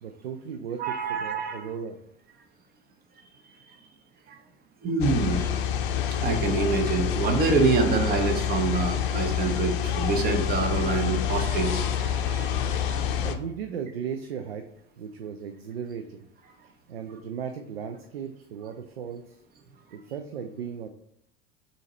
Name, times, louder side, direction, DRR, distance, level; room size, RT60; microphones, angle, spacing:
voice 1, 0.0-2.0 13.0-14.7 15.0-16.3 16.6-19.4 19.9-20.9, right 7 dB, 75° right, 6 dB, 0.5 m, -36 dB
voice 2, 0.8-1.7 4.3-4.4 4.8-5.5 6.2-13.1, right 4 dB, 30° right, 5 dB, 0.8 m, -26 dB
sound 1, 5.0-13.4, left 9 dB, 55° left, 0.6 m, -27 dB
6.2 x 2.8 x 2.9 m, 0.70 s
figure-of-eight pair, 75°, 31 cm